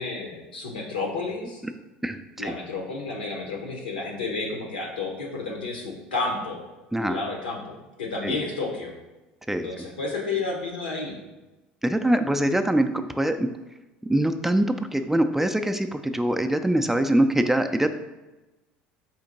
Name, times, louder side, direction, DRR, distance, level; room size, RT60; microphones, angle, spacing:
voice 1, 0.0-1.6 2.4-6.6 7.0-8.9 9.6-11.2 12.0-12.1, left 3 dB, 85° left, 0 dB, 0.9 m, -31 dB
voice 2, 2.0-2.5 6.9-7.2 8.2-8.3 9.5-9.7 11.8-12.9 13.2-13.5 14.1-14.7 14.9-18.0, right 1 dB, 5° right, 7 dB, 0.3 m, -23 dB
4.4 x 2.8 x 3.9 m, 1.1 s
hypercardioid pair, 70°, 5 cm